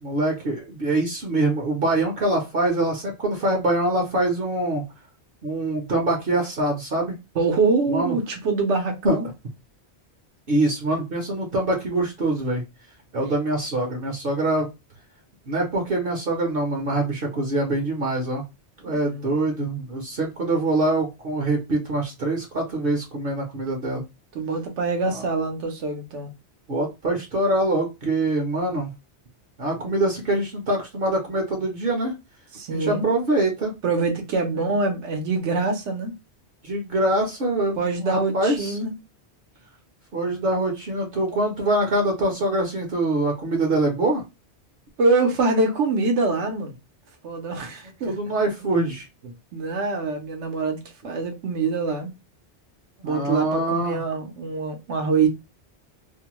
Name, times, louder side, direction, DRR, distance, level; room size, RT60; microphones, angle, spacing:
voice 1, 0.0-4.8 5.4-7.2 7.9-8.1 9.0-9.2 10.5-12.6 13.1-14.7 15.5-18.4 18.8-24.0 25.1-25.3 26.7-28.9 29.6-32.1 32.7-33.7 34.6-34.7 36.6-38.8 40.1-44.2 48.1-49.0 53.0-54.0, right 2 dB, 55° right, 0.9 m, -24 dB
voice 2, 7.3-9.3 13.2-13.4 18.9-19.6 24.3-26.3 32.5-33.0 33.8-36.1 37.8-38.9 45.0-46.8 47.2-48.1 49.2-52.1 53.0-55.3, right 3 dB, 85° right, 1.0 m, -25 dB
2.6 x 2.1 x 2.9 m
omnidirectional pair, 1.1 m